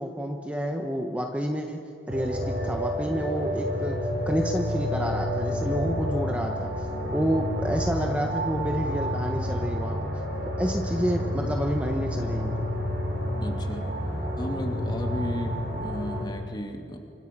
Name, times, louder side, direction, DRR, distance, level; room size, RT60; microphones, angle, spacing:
voice 1, 0.0-1.8 2.1-6.9 7.1-10.0 10.6-12.6, equal, 5° right, 2 dB, 1.1 m, -29 dB
sound 1, 2.1-16.2, equal, 55° right, 6.3 m, -29 dB
voice 2, 13.4-17.0, equal, 20° left, 3 dB, 2.5 m, -35 dB
27.0 x 25.0 x 6.1 m, 2.8 s
head